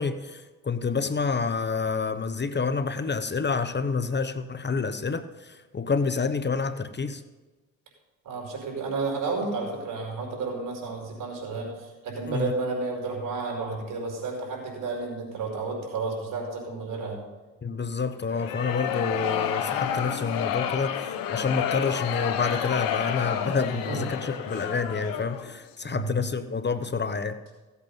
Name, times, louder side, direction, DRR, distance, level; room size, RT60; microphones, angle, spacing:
voice 1, 0.0-7.2 12.3-12.5 17.6-27.4, left 5 dB, 30° left, 11 dB, 1.0 m, -28 dB
voice 2, 8.2-17.2 23.7-24.0 25.8-26.2, right 3 dB, 65° right, 0 dB, 4.9 m, -32 dB
sound 1, 18.3-25.5, left 9 dB, 85° left, 1.2 m, -30 dB
16.0 x 8.3 x 5.5 m, 1.2 s
supercardioid pair, 60°, 33 cm